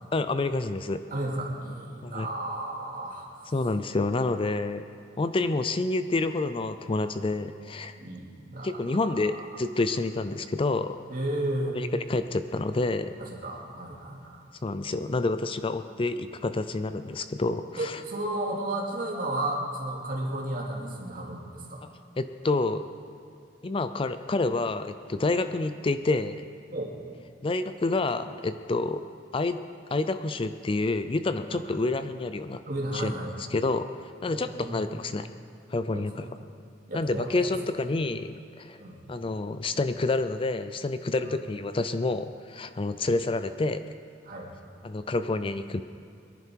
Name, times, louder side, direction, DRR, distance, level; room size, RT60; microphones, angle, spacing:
voice 1, 0.1-1.0 2.0-2.3 3.5-4.8 5.2-8.0 8.6-11.0 11.7-13.2 14.6-18.0 22.2-22.9 23.6-26.5 27.4-29.0 29.3-29.6 29.9-32.6 32.9-33.1 33.4-33.9 34.2-35.3 35.7-36.2 36.9-38.8 39.1-43.8 44.8-45.8, left 3 dB, 30° left, 10 dB, 0.4 m, -28 dB
voice 2, 1.1-3.3 8.0-8.7 9.3-9.4 11.1-11.8 13.2-14.4 17.8-21.8 26.7-26.9 31.5-31.8 32.6-33.3 34.2-34.9 35.9-36.3 36.9-37.5 38.8-39.0 41.2-41.4 44.3-44.5, right 1 dB, 50° right, -2 dB, 2.7 m, -33 dB
22.5 x 11.0 x 4.6 m, 2.6 s
head